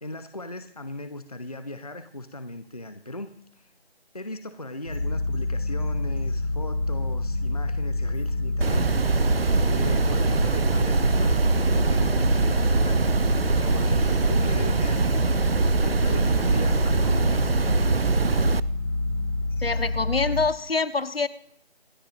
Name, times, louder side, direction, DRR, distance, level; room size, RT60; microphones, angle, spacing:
voice 1, 0.0-3.7 4.1-8.9 9.6-13.1 13.6-15.1 15.8-17.5, left 1 dB, 35° left, 10 dB, 0.7 m, -38 dB
sound 1, 4.9-20.4, left 2 dB, 20° left, 2.3 m, -27 dB
sound 2, 8.6-18.6, right 4 dB, 65° right, 0.6 m, -23 dB
voice 2, 19.6-21.3, left 4 dB, 65° left, 13 dB, 1.1 m, -25 dB
26.5 x 12.0 x 2.5 m, 0.65 s
figure-of-eight pair, 175°, 32 cm